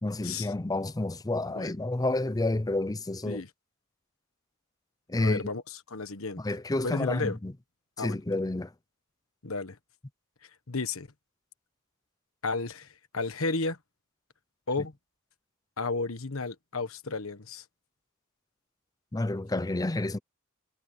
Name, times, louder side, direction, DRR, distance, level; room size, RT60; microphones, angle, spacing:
voice 1, 0.0-3.4 5.1-5.5 6.4-7.5 8.0-8.7 19.1-20.2, left 2 dB, 15° left, 0.6 m, -29 dB
voice 2, 5.2-5.6 5.9-6.4 6.8-7.4 8.0-8.2 9.4-9.8 10.7-11.1 12.4-13.8 14.7-14.9 15.8-17.6, left 3 dB, 70° left, 1.4 m, -32 dB
head